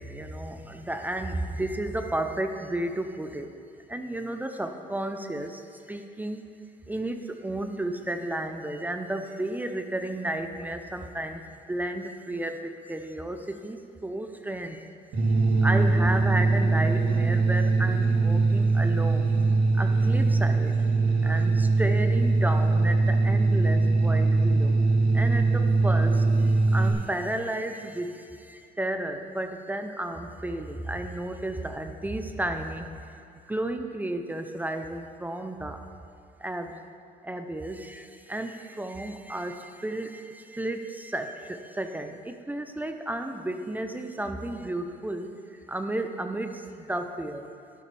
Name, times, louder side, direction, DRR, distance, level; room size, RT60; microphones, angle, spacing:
voice 1, 0.0-3.6 3.9-6.5 6.9-14.9 15.6-19.3 19.7-20.8 21.2-24.8 25.1-32.9 33.5-35.8 36.4-36.8 37.2-47.5, right 1 dB, 10° right, 6 dB, 0.6 m, -33 dB
sound 1, 15.1-26.9, right 3 dB, 85° right, 2.5 m, -22 dB
12.5 x 11.5 x 3.4 m, 2.6 s
cardioid pair, 110°, 17 cm